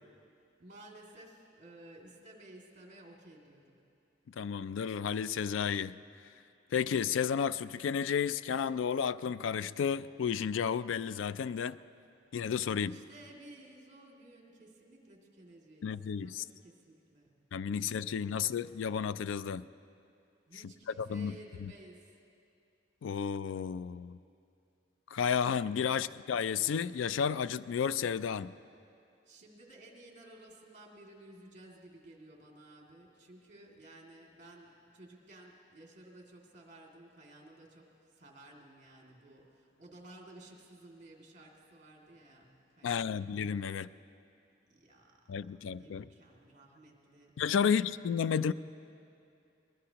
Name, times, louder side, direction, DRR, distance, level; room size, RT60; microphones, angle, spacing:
voice 1, 0.6-3.8 12.8-16.0 16.2-17.4 17.7-18.4 20.5-22.1 25.8-26.1 29.2-43.3 43.6-43.9 44.7-45.2 45.7-47.4, right 1 dB, 40° right, 2.3 m, -55 dB
voice 2, 4.3-6.0 6.7-11.8 12.3-13.0 15.8-16.4 17.5-19.6 20.6-20.7 21.0-21.3 21.6-21.7 23.0-24.2 25.1-28.5 42.8-43.9 45.3-46.0 47.4-48.5, left 7 dB, 80° left, 0.3 m, -32 dB
23.0 x 20.5 x 2.9 m
head